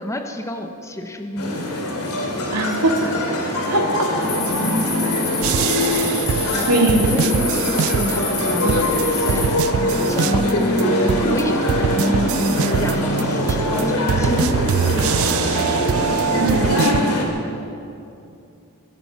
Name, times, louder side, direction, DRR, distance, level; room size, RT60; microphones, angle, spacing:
voice 1, 0.0-1.6 6.5-6.7 7.1-9.6 10.1-10.7 11.2-12.4 12.8-14.7 15.0-15.4, left 1 dB, 15° left, 5 dB, 1.0 m, -30 dB
sound 1, 1.4-17.2, left 1 dB, 75° left, 2.5 m, -22 dB
voice 2, 2.5-3.2 3.7-4.1 6.7-7.0 16.3-17.2, right 2 dB, 80° right, 2 dB, 2.2 m, -20 dB
sound 2, 4.2-9.5, left 2 dB, 35° left, 5.1 m, -28 dB
sound 3, 5.4-8.4 8.7-10.8 11.1-17.0, right 9 dB, 65° right, 0.3 m, -24 dB
22.0 x 11.0 x 5.7 m, 2.6 s
head